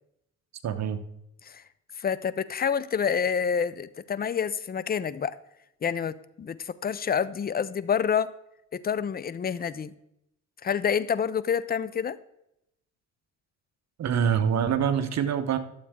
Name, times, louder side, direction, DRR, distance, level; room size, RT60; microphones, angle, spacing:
voice 1, 0.6-1.0 14.0-15.6, right 8 dB, 60° right, 10 dB, 0.9 m, -25 dB
voice 2, 2.0-5.4 5.8-8.3 8.7-9.9 10.6-12.2, left 7 dB, 30° left, 17 dB, 0.5 m, -28 dB
12.0 x 7.5 x 3.7 m, 0.82 s
cardioid pair, 90°, 30 cm